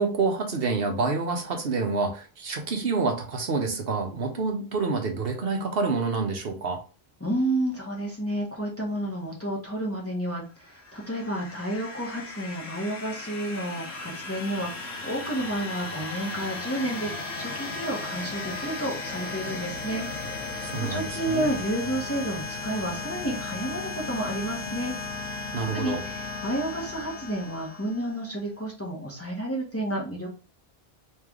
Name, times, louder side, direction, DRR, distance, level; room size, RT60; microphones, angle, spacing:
voice 1, 0.0-6.8 20.6-21.5 25.5-26.0, right 4 dB, 65° right, 3 dB, 1.0 m, -27 dB
voice 2, 7.2-20.1 20.8-24.9 25.7-30.3, right 1 dB, 15° left, -2 dB, 1.0 m, -31 dB
sound 1, 10.7-28.3, left 3 dB, 90° left, 1.0 m, -36 dB
3.2 x 3.2 x 3.6 m, 0.34 s
omnidirectional pair, 1.1 m